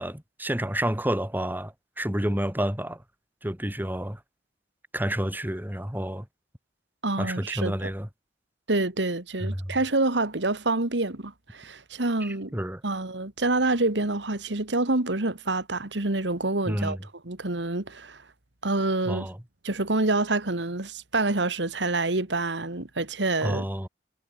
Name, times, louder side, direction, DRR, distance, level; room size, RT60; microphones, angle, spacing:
voice 1, 0.0-3.0 3.4-4.2 4.9-6.3 7.2-8.1 9.4-9.7 12.2-12.8 16.6-17.0 19.1-19.4 23.4-23.9, right 1 dB, 10° right, 2.7 m, -29 dB
voice 2, 7.0-7.9 8.7-12.5 12.8-17.0 17.2-18.2 18.6-19.3 19.6-23.6, right 2 dB, 85° right, 2.1 m, -27 dB
head